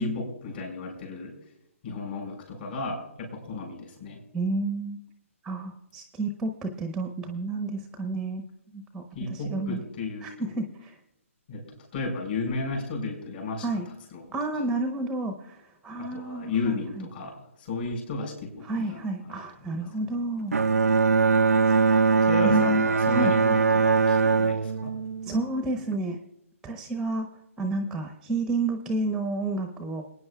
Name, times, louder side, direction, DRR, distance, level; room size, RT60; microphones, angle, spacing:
voice 1, 0.0-1.3 1.8-4.2 9.2-10.5 11.5-11.7 11.9-13.7 14.1-14.2 14.5-14.6 16.0-19.4 19.6-19.9 22.2-25.0, left 3 dB, 45° left, 1 dB, 5.2 m, -33 dB
voice 2, 4.3-5.0 5.4-8.4 8.7-9.8 10.2-10.9 13.6-13.9 14.3-17.0 18.6-20.5 21.3-21.6 21.9-22.0 22.4-23.3 24.0-24.2 25.2-26.2 26.6-27.3 27.6-30.0, right 2 dB, 5° right, 6 dB, 0.9 m, -30 dB
Bowed string instrument, 20.5-26.0, right 5 dB, 85° right, 0.4 m, -22 dB
28.5 x 9.8 x 2.3 m, 0.85 s
figure-of-eight pair, 140°, 8 cm